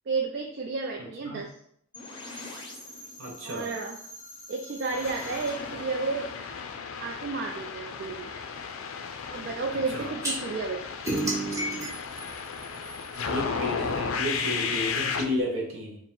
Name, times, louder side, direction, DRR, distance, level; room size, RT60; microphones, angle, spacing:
voice 1, 0.1-1.5 3.4-4.0 4.5-6.3 7.0-8.3 9.3-10.8, right 4 dB, 50° right, 1 dB, 0.4 m, -32 dB
sound 1, 1.9-7.7, left 1 dB, 20° left, 0.7 m, -44 dB
voice 2, 3.2-3.7 9.9-10.1 13.3-16.0, left 1 dB, 70° right, 0 dB, 1.0 m, -32 dB
sound 2, 4.9-15.3, left 5 dB, 80° left, 0.4 m, -34 dB
sound 3, 10.2-10.3 11.0-13.2, right 2 dB, 15° right, 0.8 m, -31 dB
4.7 x 2.1 x 3.7 m, 0.68 s
head